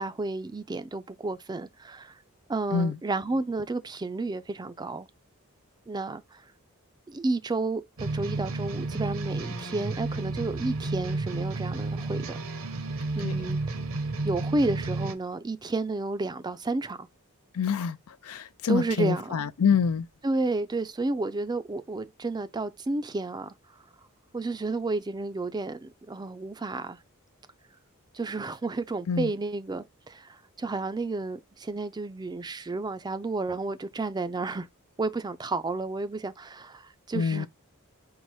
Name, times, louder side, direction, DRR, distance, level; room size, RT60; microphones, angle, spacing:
voice 1, 0.0-2.1 2.5-5.1 5.9-6.4 7.1-12.4 13.1-13.6 14.2-17.1 18.7-19.5 20.2-23.5 24.3-27.0 28.1-34.7 35.0-37.5, right 3 dB, 20° right, 0.4 m, -31 dB
sound 1, 8.0-15.1, right 2 dB, 65° right, 0.8 m, -31 dB
voice 2, 17.5-20.1 29.1-29.3 37.1-37.5, left 6 dB, 80° left, 0.5 m, -26 dB
4.7 x 2.0 x 4.1 m
head